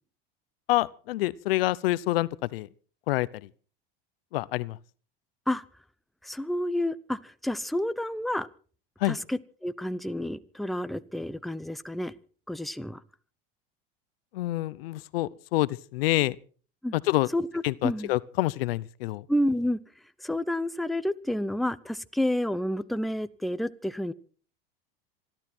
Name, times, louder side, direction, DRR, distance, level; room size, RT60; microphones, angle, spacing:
voice 1, 0.7-2.7 3.1-3.3 4.3-4.8 9.0-9.2 14.3-16.4 16.9-17.3 17.6-19.2, left 17 dB, 80° left, 0.7 m, -27 dB
voice 2, 6.2-8.5 9.0-12.1 12.5-13.0 16.8-16.9 17.3-18.1 19.3-19.8 20.2-24.1, left 1 dB, ahead, 0.8 m, -30 dB
27.0 x 12.0 x 4.4 m
hypercardioid pair, 100°, 29 cm